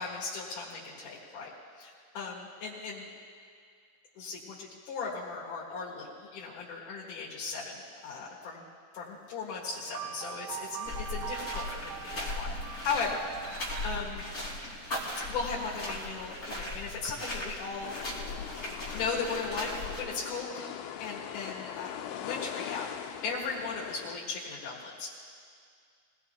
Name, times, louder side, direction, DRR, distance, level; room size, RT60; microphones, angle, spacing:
voice 1, 0.0-1.5 1.8-3.1 4.2-8.6 8.9-14.2 15.3-17.9 18.9-20.7 21.0-22.9 23.2-25.1, left 4 dB, 70° left, -7 dB, 3.2 m, -37 dB
sound 1, 9.6-14.0, right 9 dB, 85° right, 1.5 m, -41 dB
sound 2, 10.8-20.0, left 1 dB, 25° left, 2.8 m, -38 dB
sound 3, 17.8-24.2, left 10 dB, 90° left, 2.3 m, -41 dB
21.5 x 19.0 x 2.3 m, 2.2 s
omnidirectional pair, 3.8 m